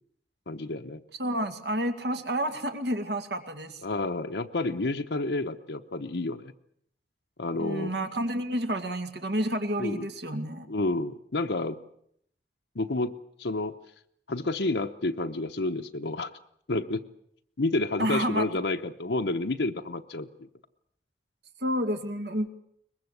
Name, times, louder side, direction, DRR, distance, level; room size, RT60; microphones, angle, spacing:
voice 1, 0.5-1.0 3.8-6.5 7.4-7.9 9.8-10.1 10.7-11.8 12.7-13.7 14.3-16.3 16.7-17.0 17.6-20.5, left 2 dB, 80° left, 5 dB, 1.0 m, -30 dB
voice 2, 1.2-3.8 7.6-10.7 18.0-18.4 21.6-22.5, equal, 75° right, 6 dB, 2.3 m, -29 dB
23.0 x 21.0 x 8.1 m, 0.70 s
head